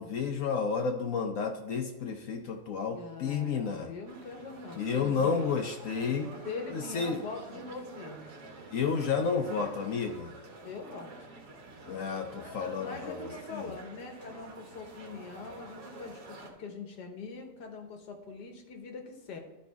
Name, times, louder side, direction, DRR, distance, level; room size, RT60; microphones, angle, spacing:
voice 1, 0.0-3.9 4.8-6.3 6.7-7.2 8.7-10.3 11.9-13.6, left 5 dB, 60° left, 4 dB, 0.9 m, -31 dB
voice 2, 2.9-5.5 6.5-8.3 10.6-11.1 12.8-19.4, left 4 dB, 90° left, 3 dB, 1.8 m, -42 dB
sound 1, 4.1-16.5, right 3 dB, 75° right, 1.7 m, -48 dB
12.0 x 5.3 x 3.5 m, 1.1 s
omnidirectional pair, 1.8 m